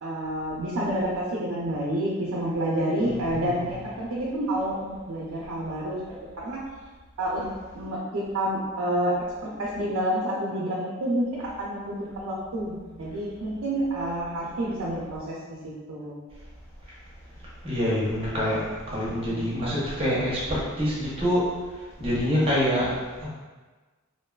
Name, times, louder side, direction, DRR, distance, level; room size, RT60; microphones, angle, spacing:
voice 1, 0.0-6.0 6.4-6.6 7.2-7.5 7.7-9.1 9.4-15.3 15.9-16.2 18.9-19.6, right 1 dB, 80° right, -6 dB, 0.5 m, -29 dB
voice 2, 3.0-3.6 17.6-21.5 22.0-22.9 23.2-23.3, equal, 25° right, -7 dB, 0.7 m, -26 dB
2.5 x 2.3 x 2.2 m, 1.3 s
head